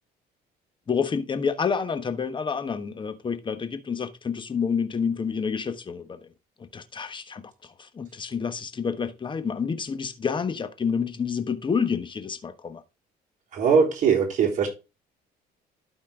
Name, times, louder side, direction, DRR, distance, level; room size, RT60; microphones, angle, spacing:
voice 1, 0.9-6.3 6.7-12.8, left 6 dB, 30° left, 1.2 m, -29 dB
voice 2, 13.5-14.7, right 6 dB, 50° right, 3.7 m, -21 dB
12.0 x 4.3 x 3.6 m
cardioid pair, 110°, 17 cm